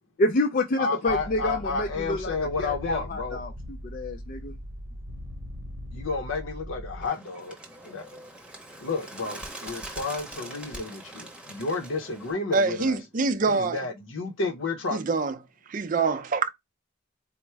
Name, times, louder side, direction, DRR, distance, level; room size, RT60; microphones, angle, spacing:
voice 1, 0.2-3.5 3.8-4.6, left 1 dB, 45° left, 0.4 m, -28 dB
voice 2, 0.8-3.4 5.9-7.6 7.8-8.1 8.8-13.0 13.5-15.0, left 3 dB, 80° left, 0.7 m, -31 dB
sound 1, 1.1-7.1, equal, 60° right, 0.9 m, -40 dB
Bird, 7.0-12.3, right 1 dB, 5° right, 0.8 m, -43 dB
voice 3, 12.5-13.8 14.9-15.4 15.7-16.5, right 4 dB, 45° right, 0.4 m, -25 dB
4.2 x 2.1 x 4.5 m
head